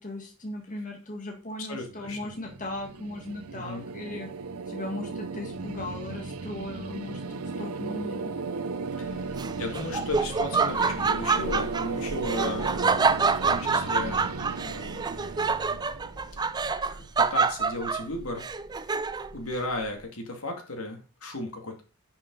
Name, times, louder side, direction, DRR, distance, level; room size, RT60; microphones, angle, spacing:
voice 1, 0.0-4.3 4.7-8.3, left 2 dB, 35° left, 1 dB, 1.9 m, -37 dB
voice 2, 1.6-2.3 3.5-3.9 9.0-14.3 14.6-15.2 16.9-18.5 19.3-21.8, left 2 dB, 75° left, 3 dB, 2.4 m, -35 dB
sound 1, 1.7-16.8, right 4 dB, 85° right, 0.7 m, -36 dB
Laughter, 9.3-19.4, right 4 dB, 20° right, 0.3 m, -27 dB
11.0 x 6.0 x 4.1 m, 0.34 s
head